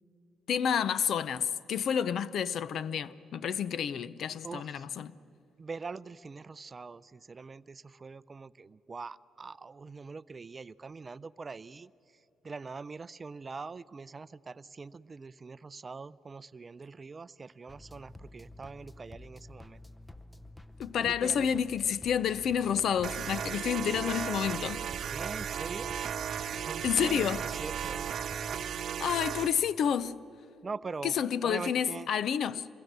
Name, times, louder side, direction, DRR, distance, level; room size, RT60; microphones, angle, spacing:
voice 1, 0.5-5.1 20.8-24.9 26.8-27.4 29.0-30.2 31.0-32.7, left 8 dB, 65° left, 0.6 m, -29 dB
voice 2, 4.4-4.9 5.6-11.9 12.4-19.8 21.0-21.5 25.1-25.9 26.6-28.1 30.6-32.1, right 4 dB, 30° right, 0.5 m, -43 dB
sound 1, 17.7-28.7, left 1 dB, 10° left, 0.7 m, -50 dB
sound 2, 23.0-29.5, right 8 dB, 60° right, 0.9 m, -35 dB
27.5 x 22.0 x 6.7 m
cardioid pair, 90°, 0 cm